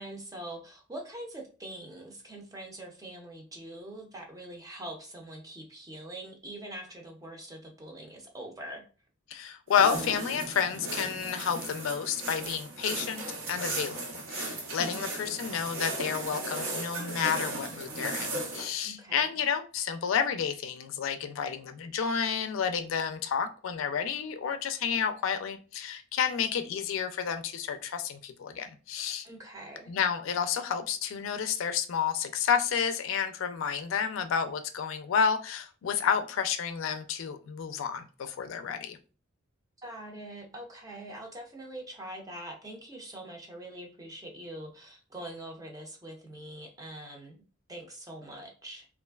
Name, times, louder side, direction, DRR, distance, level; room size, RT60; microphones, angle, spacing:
voice 1, 0.0-8.8 14.8-15.1 18.8-19.4 29.2-29.9 39.8-47.4 47.7-48.9, right 1 dB, 20° right, 0.5 m, -43 dB
voice 2, 9.3-13.2 13.5-14.0 14.3-29.3 29.9-39.0, left 7 dB, 75° left, 0.4 m, -30 dB
sound 1, 9.7-18.7, right 2 dB, 70° right, 0.8 m, -36 dB
3.1 x 2.4 x 2.3 m
head